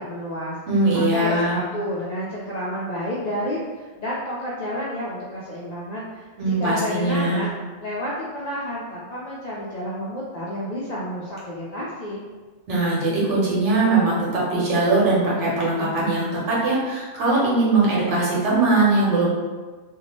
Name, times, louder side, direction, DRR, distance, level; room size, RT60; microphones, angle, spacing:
voice 1, 0.0-0.6 0.9-7.5 7.8-12.3, equal, 65° left, -7 dB, 0.4 m, -30 dB
voice 2, 0.7-1.6 6.4-7.4 12.7-19.3, right 2 dB, 80° right, -6 dB, 1.2 m, -21 dB
2.7 x 2.2 x 2.9 m, 1.3 s
omnidirectional pair, 1.2 m